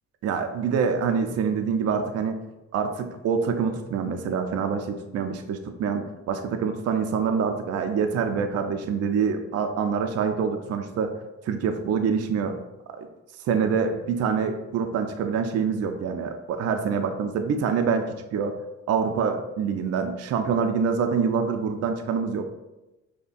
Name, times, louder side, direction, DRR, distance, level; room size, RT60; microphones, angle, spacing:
voice 1, 0.2-2.4 2.7-11.1 11.4-12.6 12.9-13.1 13.4-18.6 18.9-22.5, right 6 dB, 55° right, 6 dB, 0.4 m, -26 dB
5.2 x 2.2 x 2.5 m, 1.0 s
cardioid pair, 90°, 30 cm